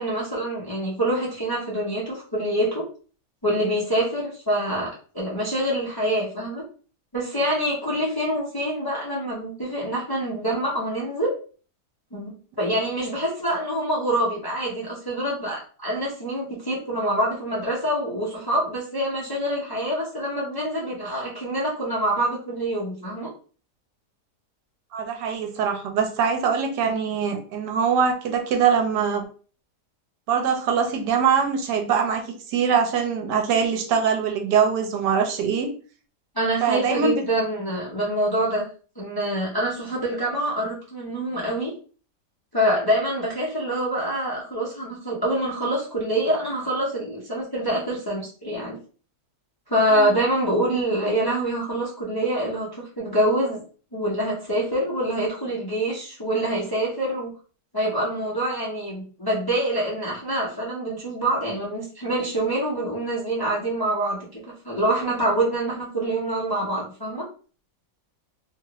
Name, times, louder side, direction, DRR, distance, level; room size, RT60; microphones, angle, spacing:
voice 1, 0.0-2.8 3.4-6.6 7.1-11.3 12.1-23.3 36.3-38.6 39.0-41.7 42.5-48.8 49.7-53.6 53.9-57.3 57.7-67.2, right 1 dB, 20° left, -5 dB, 0.5 m, -25 dB
voice 2, 24.9-29.2 30.3-35.7 36.6-37.1 49.9-50.2, right 6 dB, 80° right, 4 dB, 1.2 m, -23 dB
2.8 x 2.4 x 2.9 m, 0.40 s
omnidirectional pair, 1.8 m